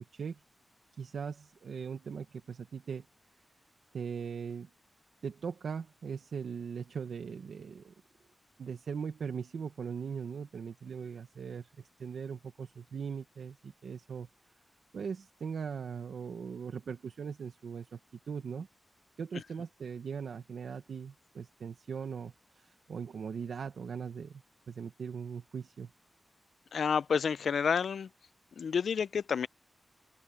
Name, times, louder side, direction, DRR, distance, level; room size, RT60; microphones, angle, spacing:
voice 1, 0.9-3.1 3.9-4.7 5.2-7.9 8.6-14.3 14.9-18.0 18.2-18.7 19.2-25.9, right 6 dB, 85° right, 1.1 m, -40 dB
voice 2, 26.7-28.1 28.6-29.5, left 6 dB, 80° left, 0.4 m, -29 dB
open air
wide cardioid pair, 125°, 0 cm